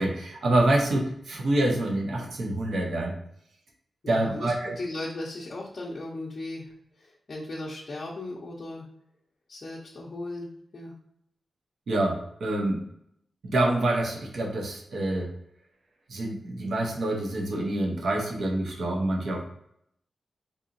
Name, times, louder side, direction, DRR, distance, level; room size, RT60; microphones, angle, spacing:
voice 1, 0.0-3.2 4.1-4.8 11.9-12.8 13.4-15.3 16.1-19.4, right 1 dB, 60° right, 1 dB, 0.8 m, -26 dB
voice 2, 4.0-8.9 9.5-11.0, left 2 dB, 35° left, -5 dB, 0.6 m, -37 dB
3.9 x 2.9 x 2.6 m, 0.72 s
wide cardioid pair, 175°, 0 cm